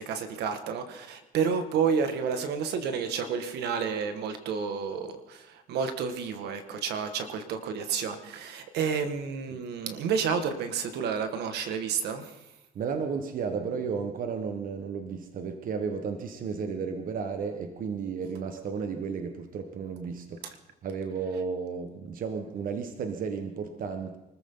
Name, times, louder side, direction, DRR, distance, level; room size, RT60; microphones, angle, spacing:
voice 1, 0.0-12.5, right 6 dB, 75° right, 8 dB, 1.9 m, -30 dB
voice 2, 12.7-20.6 20.8-24.2, right 5 dB, 55° right, 6 dB, 1.4 m, -33 dB
24.5 x 14.5 x 4.0 m, 0.98 s
cardioid pair, 110°, 17 cm